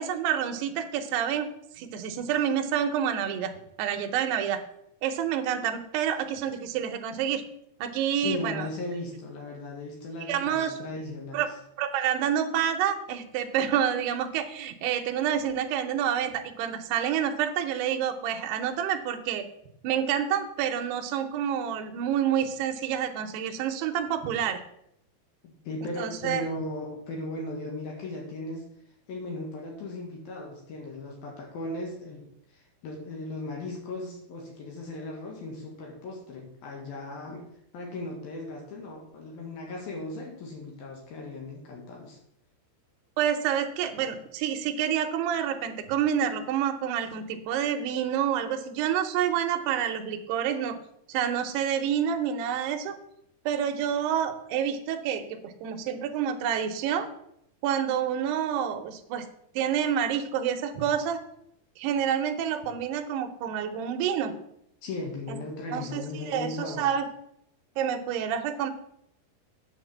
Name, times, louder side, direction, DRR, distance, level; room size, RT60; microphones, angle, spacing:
voice 1, 0.0-1.5 1.8-3.5 3.8-4.6 5.0-7.4 7.8-8.7 10.3-10.8 11.3-11.5 11.8-19.5 19.8-24.6 26.0-26.4 43.2-50.8 51.1-53.0 53.5-57.1 57.6-59.3 59.6-61.2 61.8-64.3 65.3-65.4 65.7-67.1 67.8-68.7, right 9 dB, 75° right, 6 dB, 2.8 m, -28 dB
voice 2, 8.1-11.5 25.4-28.6 29.1-37.4 37.7-42.2 64.8-66.9, left 2 dB, 65° left, 0 dB, 3.0 m, -37 dB
9.3 x 4.8 x 7.2 m, 0.75 s
omnidirectional pair, 5.1 m